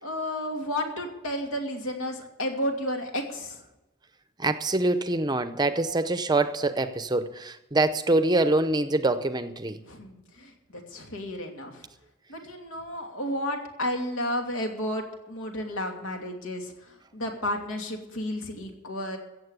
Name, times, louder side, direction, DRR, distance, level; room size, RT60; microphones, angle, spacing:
voice 1, 0.0-3.6 9.8-11.9 12.3-19.2, left 1 dB, 85° left, 2.7 m, -32 dB
voice 2, 4.4-9.8, right 2 dB, 20° right, 0.6 m, -25 dB
15.5 x 7.6 x 8.2 m
head